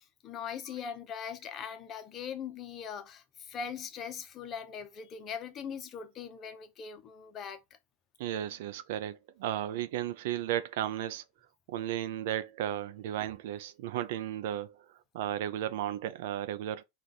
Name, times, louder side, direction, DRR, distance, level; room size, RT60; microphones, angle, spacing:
voice 1, 0.0-7.6, left 7 dB, 35° left, 0.8 m, -41 dB
voice 2, 8.2-11.2 11.7-14.8 15.1-16.8, right 11 dB, 60° right, 0.4 m, -34 dB
4.8 x 2.4 x 4.0 m
hypercardioid pair, 95°, 0 cm